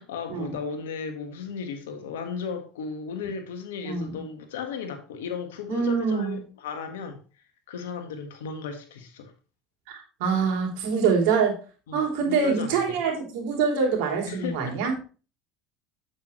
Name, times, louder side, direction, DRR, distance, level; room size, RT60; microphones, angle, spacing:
voice 1, 0.0-7.2 7.7-9.3 11.9-13.0 14.2-15.1, left 6 dB, 85° left, 1.6 m, -35 dB
voice 2, 5.7-6.4 9.9-11.5 11.9-15.1, right 5 dB, 75° right, 3.2 m, -25 dB
8.3 x 8.0 x 3.2 m
supercardioid pair, 90°, 0 cm